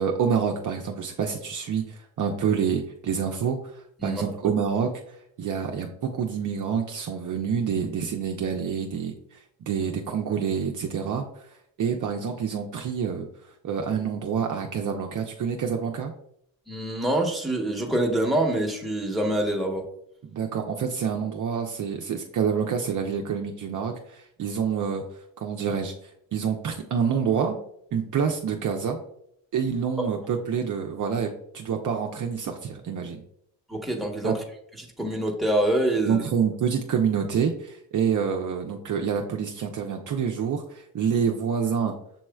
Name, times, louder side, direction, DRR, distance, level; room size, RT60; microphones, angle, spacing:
voice 1, 0.0-11.5 11.8-13.3 13.6-16.1 20.3-25.0 25.4-25.9 26.3-27.6 27.9-29.0 29.5-33.2 34.2-34.3 36.0-41.9, right 7 dB, 45° right, 2 dB, 0.6 m, -27 dB
voice 2, 16.7-19.9 30.0-30.1 33.7-34.4 34.8-36.2, right 1 dB, ahead, 0 dB, 1.1 m, -25 dB
6.9 x 3.1 x 2.3 m, 0.71 s
supercardioid pair, 65°, 43 cm